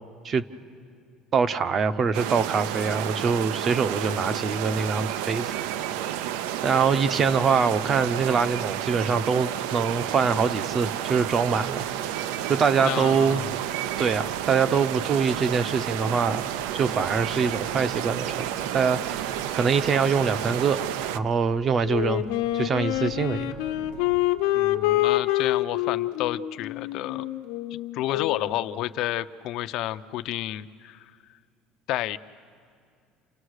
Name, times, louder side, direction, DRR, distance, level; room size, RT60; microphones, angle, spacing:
voice 1, 1.3-5.5 6.6-11.8 12.5-13.4 14.0-16.5 16.7-22.2 22.5-23.6, right 5 dB, 30° right, 13 dB, 0.7 m, -24 dB
sound 1, 2.1-21.2, right 11 dB, 90° right, 0.7 m, -31 dB
sound 2, 6.1-24.3, right 3 dB, 75° right, 4.3 m, -50 dB
voice 2, 12.8-13.5 24.5-27.3 27.7-31.1 31.9-32.2, left 14 dB, 55° left, 12 dB, 0.6 m, -30 dB
Wind instrument woodwind instrument, 21.8-28.5, left 15 dB, 85° left, 1.1 m, -26 dB
30.0 x 28.0 x 6.5 m, 2.3 s
cardioid pair, 155°, 0 cm